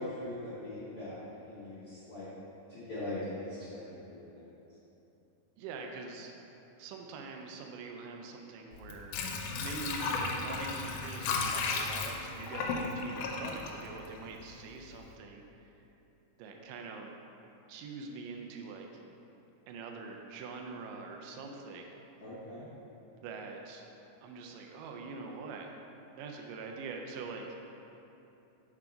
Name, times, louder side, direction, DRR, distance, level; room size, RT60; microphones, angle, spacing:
voice 1, 0.0-2.2 2.7-4.2 22.2-22.7, left 1 dB, 60° left, -11 dB, 0.9 m, -41 dB
voice 2, 5.6-6.3 6.8-9.2 9.6-15.7 16.4-17.1 17.7-18.9 19.7-21.9 23.2-23.8 24.2-25.7 26.2-27.5, right 4 dB, 85° right, 2 dB, 2.2 m, -44 dB
Water / Sink (filling or washing), 8.7-14.6 15.0-15.1, left 4 dB, 80° left, 2.1 m, -35 dB
5.9 x 4.5 x 5.0 m, 3.0 s
omnidirectional pair, 3.7 m